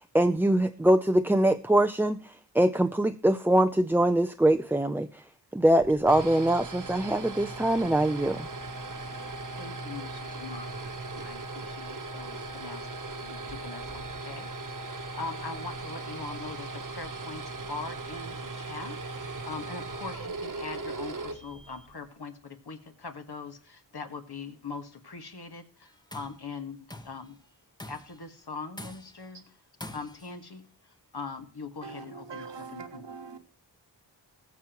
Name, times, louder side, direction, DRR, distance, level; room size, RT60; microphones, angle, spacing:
voice 1, 0.0-5.2 5.5-8.5, right 1 dB, 5° right, 0.4 m, -23 dB
sound 1, 5.8-22.0, right 3 dB, 45° right, 1.1 m, -38 dB
voice 2, 9.6-14.5 14.8-27.4 27.9-29.6 29.9-33.1, left 4 dB, 65° left, 1.7 m, -42 dB
Tools, 25.9-26.4 26.9-27.3 27.8-28.2 28.8-29.3 29.8-30.4, left 1 dB, 10° left, 0.9 m, -44 dB
voice 3, 31.8-33.4, right 5 dB, 80° right, 1.3 m, -42 dB
20.0 x 7.3 x 3.0 m
wide cardioid pair, 70°, 43 cm